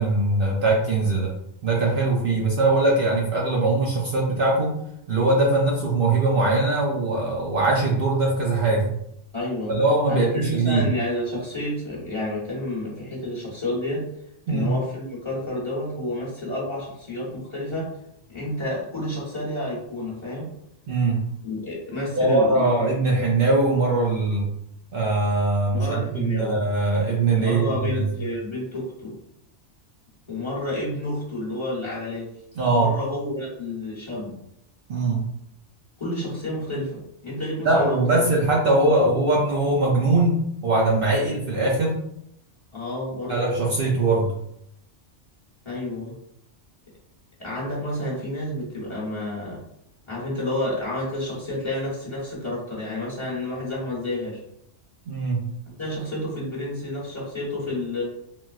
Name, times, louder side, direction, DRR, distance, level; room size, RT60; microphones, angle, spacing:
voice 1, 0.0-1.3 1.6-4.7 5.1-8.9 9.7-10.8 14.5-14.7 20.9-21.2 22.2-24.5 24.9-28.1 32.6-32.9 34.9-35.2 37.6-42.0 43.3-44.3 55.1-55.4, right 2 dB, 60° right, -3 dB, 0.7 m, -21 dB
voice 2, 9.3-9.8 10.1-14.1 14.5-17.9 18.3-20.5 21.4-22.9 25.7-26.6 27.3-29.1 30.3-32.3 32.7-34.4 36.0-38.3 38.8-39.0 42.7-43.4 45.6-46.2 47.4-49.6 50.1-54.4 55.6-58.0, left 1 dB, 25° left, -6 dB, 1.0 m, -30 dB
3.9 x 2.1 x 2.3 m, 0.76 s
omnidirectional pair, 1.2 m